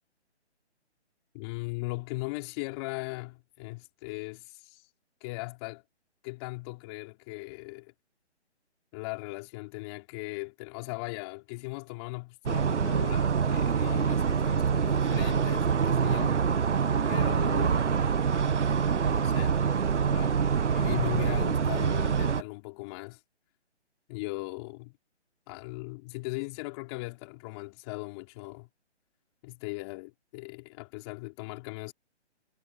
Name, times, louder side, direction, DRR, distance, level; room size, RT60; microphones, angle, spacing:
voice 1, 1.3-4.9 5.2-5.8 6.2-7.9 8.9-16.4 17.1-17.9 18.9-19.6 20.0-20.4 20.7-23.2 24.1-25.0 25.5-28.7 29.4-31.9, left 26 dB, 20° left, 4.8 m, -38 dB
sound 1, 12.5-22.4, right 6 dB, 80° right, 1.3 m, -25 dB
hypercardioid pair, 160°, 35 cm